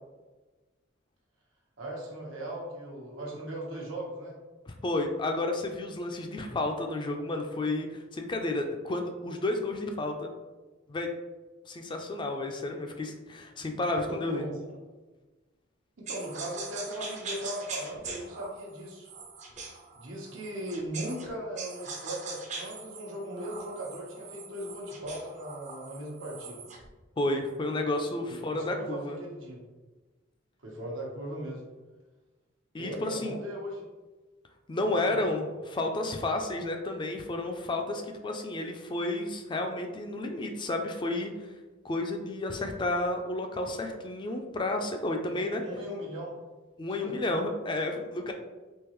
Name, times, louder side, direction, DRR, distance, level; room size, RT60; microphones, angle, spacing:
voice 1, 1.8-4.4 13.9-14.6 16.0-19.1 19.9-26.7 28.3-29.6 30.6-31.6 32.8-33.8 34.8-35.2 45.3-46.3 46.9-47.1, right 1 dB, 90° right, -2 dB, 1.0 m, -38 dB
voice 2, 4.7-10.3 10.9-11.1 11.7-14.5 27.2-29.2 32.7-33.4 34.7-41.3 41.8-45.6 46.8-48.3, left 2 dB, 25° left, 3 dB, 0.4 m, -31 dB
sound 1, 16.1-21.3 21.6-26.9, right 4 dB, 40° right, 0.5 m, -42 dB
3.7 x 2.9 x 3.0 m, 1.2 s
head